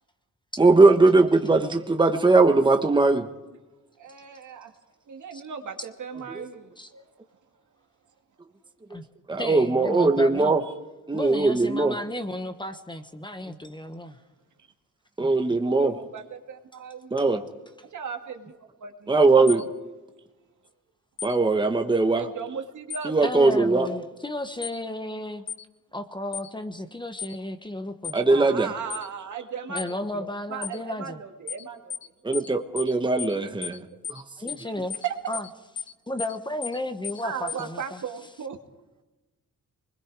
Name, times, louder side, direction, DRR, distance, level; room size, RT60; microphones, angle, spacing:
voice 1, 0.6-3.3 6.3-6.4 8.9-9.0 9.3-10.6 11.1-11.9 15.2-15.9 17.1-17.4 19.1-19.6 21.2-22.2 23.0-23.9 28.1-28.7 32.2-33.8 34.1-34.2, right 3 dB, 15° right, 5 dB, 1.2 m, -20 dB
voice 2, 4.0-4.7 5.1-7.1 15.7-17.5 17.9-19.7 22.1-23.2 28.3-31.9 35.0-35.1 37.2-38.6, right 7 dB, 65° right, 4 dB, 2.2 m, -37 dB
voice 3, 9.4-10.5 11.1-14.2 15.2-15.3 23.2-25.4 25.9-28.2 29.7-31.2 34.4-35.5 35.8-38.0, left 1 dB, 15° left, 8 dB, 1.2 m, -33 dB
sound 1, 19.5-19.6 21.2-21.4 22.9-23.1 24.6-24.8 25.5-25.6 26.3-26.5 27.2-27.4 28.0-28.2 28.9-29.1 29.8-29.9 30.6-30.8 31.5-31.6 31.9-32.1 32.3-32.5 32.8-32.9 33.2-33.4 33.6-33.8 34.0-34.2 34.5-34.6 34.9-35.1 35.3-35.5 35.8-35.9 36.2-36.4 36.6-36.8 37.0-37.2 37.5-37.6, left 7 dB, 60° left, 1.0 m, -34 dB
26.0 x 21.0 x 4.8 m, 1.1 s
wide cardioid pair, 130°, 32 cm